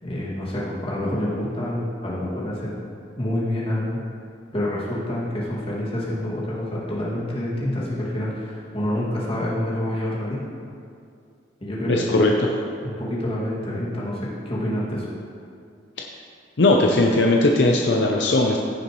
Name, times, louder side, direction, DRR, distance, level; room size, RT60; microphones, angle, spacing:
voice 1, 0.0-2.8 3.2-4.0 4.5-10.4 11.6-12.4 12.8-15.1, left 1 dB, 30° left, -6 dB, 2.2 m, -27 dB
voice 2, 11.9-12.3 16.6-18.6, left 2 dB, 65° left, 1 dB, 0.6 m, -18 dB
15.5 x 6.7 x 3.1 m, 2.4 s
head